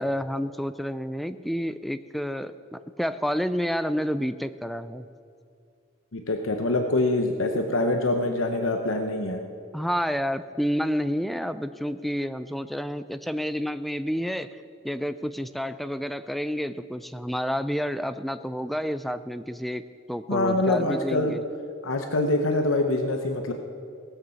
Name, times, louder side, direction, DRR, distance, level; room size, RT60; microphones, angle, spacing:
voice 1, 0.0-5.1 9.7-14.6 14.8-19.8 20.1-21.4, equal, ahead, 12 dB, 0.3 m, -29 dB
voice 2, 6.1-9.4 20.3-21.4 21.8-23.5, left 2 dB, 70° left, 4 dB, 0.9 m, -25 dB
18.5 x 6.6 x 7.0 m, 2.4 s
head